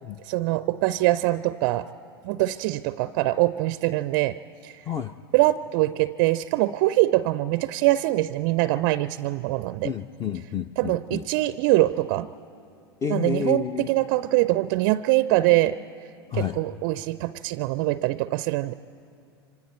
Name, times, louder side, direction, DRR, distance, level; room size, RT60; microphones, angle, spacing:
voice 1, 0.2-1.9 2.2-4.8 5.3-9.9 10.8-12.3 13.1-15.8 16.3-18.7, right 17 dB, 45° right, 16 dB, 0.4 m, -23 dB
voice 2, 9.8-11.2 13.0-13.9 16.3-16.6, left 7 dB, 25° left, 10 dB, 0.5 m, -29 dB
26.0 x 25.5 x 4.4 m, 2.4 s
hypercardioid pair, 95°, 13 cm